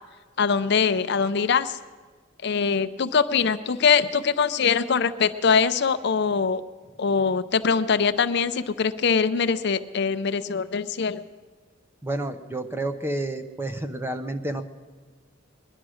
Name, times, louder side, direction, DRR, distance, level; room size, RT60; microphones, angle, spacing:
voice 1, 0.4-1.8 2.4-6.6 7.0-11.2, left 5 dB, 60° left, 11 dB, 0.6 m, -23 dB
voice 2, 12.0-14.6, right 1 dB, 10° right, 8 dB, 0.8 m, -30 dB
21.0 x 10.5 x 6.3 m, 1.4 s
head